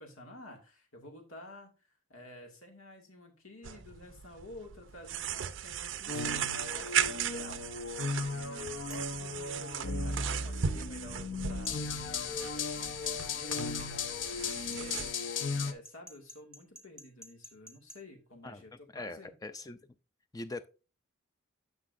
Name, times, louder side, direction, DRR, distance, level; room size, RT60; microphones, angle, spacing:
voice 1, 0.0-8.4 8.9-19.3, left 1 dB, 90° left, 2.2 m, -51 dB
sound 1, 3.6-15.1, right 8 dB, 65° right, 0.5 m, -37 dB
sound 2, 6.1-15.7, left 4 dB, 65° left, 0.7 m, -36 dB
sound 3, 8.9-9.2 11.7-11.8 14.3-18.0, right 1 dB, 5° right, 0.9 m, -51 dB
voice 2, 18.9-19.8 20.3-20.7, left 2 dB, 15° left, 0.4 m, -41 dB
9.9 x 6.5 x 2.6 m
head